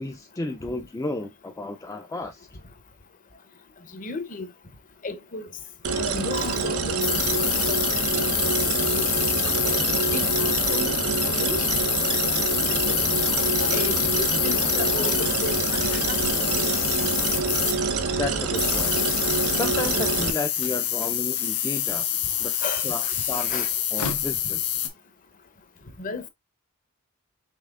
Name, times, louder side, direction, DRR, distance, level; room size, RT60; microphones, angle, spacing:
voice 1, 0.0-2.5 18.2-19.0 19.5-22.1 22.4-23.7 23.9-24.6, left 2 dB, 15° left, 0.3 m, -32 dB
voice 2, 3.9-4.5 5.0-5.5 6.0-7.8 8.1-8.3 8.9-9.1 9.6-11.0 11.2-11.7 12.1-13.0 13.5-16.4 22.6-23.7 26.0-26.3, left 4 dB, 35° left, 0.7 m, -35 dB
sound 1, 5.8-20.3, right 4 dB, 75° right, 0.8 m, -26 dB
sound 2, 7.0-18.1 18.5-24.9, left 10 dB, 80° left, 0.9 m, -26 dB
5.5 x 3.2 x 2.4 m
head